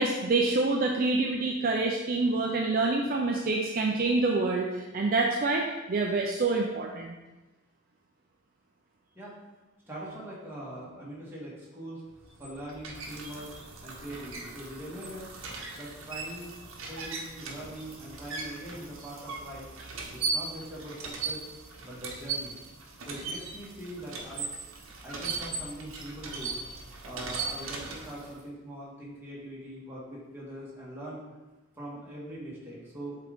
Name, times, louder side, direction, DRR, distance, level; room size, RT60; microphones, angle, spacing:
voice 1, 0.0-7.1, right 3 dB, 45° right, 0 dB, 0.4 m, -27 dB
voice 2, 9.9-12.0 12.4-13.5 13.8-15.3 15.7-16.5 16.9-19.7 20.1-21.4 21.8-22.6 23.0-24.5 25.0-31.2 31.8-33.2, right 1 dB, 10° right, -7 dB, 1.6 m, -42 dB
sound 1, 12.2-28.4, right 4 dB, 70° right, 1.0 m, -38 dB
7.5 x 3.8 x 3.5 m, 1.1 s
head